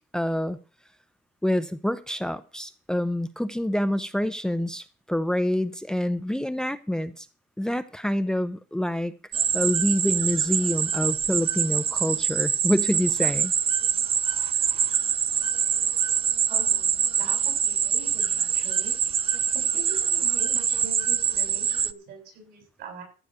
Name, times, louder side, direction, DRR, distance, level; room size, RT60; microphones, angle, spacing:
voice 1, 0.1-0.6 1.4-7.3 7.6-13.5, left 1 dB, 5° left, 11 dB, 0.7 m, -27 dB
sound 1, 9.3-21.9, right 8 dB, 35° right, 0.5 m, -25 dB
voice 2, 16.5-18.9 19.5-23.0, right 3 dB, 75° right, 2 dB, 7.6 m, -43 dB
14.5 x 6.2 x 6.8 m, 0.36 s
cardioid pair, 110°, 17 cm